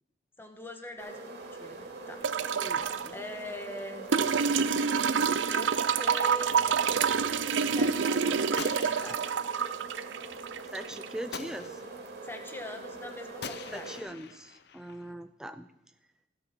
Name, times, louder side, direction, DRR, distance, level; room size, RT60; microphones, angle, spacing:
voice 1, 0.4-2.9 3.1-4.1 5.4-6.8 7.7-9.3 12.2-13.9, left 1 dB, 10° left, 5 dB, 1.4 m, -43 dB
sound 1, 1.0-14.0, right 2 dB, 60° right, 2.8 m, -43 dB
sound 2, 2.2-3.1 4.1-11.1 12.5-12.6, right 6 dB, 80° right, 0.6 m, -27 dB
voice 2, 2.6-3.1 10.7-11.8 13.7-15.7, right 1 dB, 5° right, 8 dB, 0.4 m, -41 dB
Gunshot gunfire, 8.6-9.7 11.3-12.1 13.4-15.1, left 6 dB, 60° left, 0.7 m, -44 dB
16.0 x 8.8 x 6.1 m, 0.96 s
head